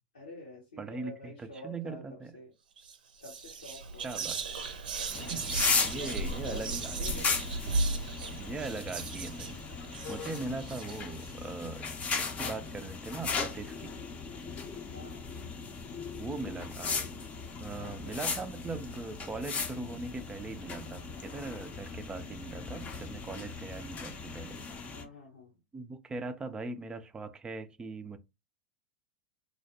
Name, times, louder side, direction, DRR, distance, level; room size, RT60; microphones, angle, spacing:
voice 1, 0.1-2.5 3.2-4.3 4.6-4.7 5.9-7.5 14.9-15.3 17.8-18.2 24.9-25.5, left 2 dB, 85° left, 1.1 m, -47 dB
voice 2, 0.8-2.4 4.0-4.4 5.7-7.3 8.4-9.6 10.1-11.9 12.2-14.0 16.2-17.0 17.6-24.6 25.7-28.2, right 3 dB, 15° right, 0.4 m, -40 dB
Whispering, 2.8-3.0 3.2-11.3, right 3 dB, 80° right, 0.5 m, -36 dB
sound 1, 5.1-25.0, left 4 dB, 30° left, 0.6 m, -37 dB
2.5 x 2.0 x 2.8 m
hypercardioid pair, 95°, 5 cm